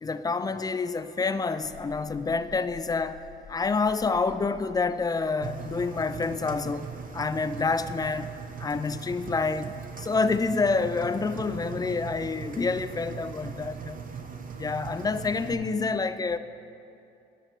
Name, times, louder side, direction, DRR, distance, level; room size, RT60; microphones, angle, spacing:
voice 1, 0.0-3.2 3.5-6.9 7.1-8.3 8.6-14.0 14.6-16.4, left 4 dB, 20° left, 13 dB, 0.3 m, -28 dB
sound 1, 1.6-6.5 6.8-6.9, left 7 dB, 80° left, 0.6 m, -50 dB
Engine, 5.4-15.5, right 6 dB, 45° right, 0.8 m, -40 dB
11.0 x 6.6 x 4.6 m, 2.6 s
cardioid pair, 90°, 20 cm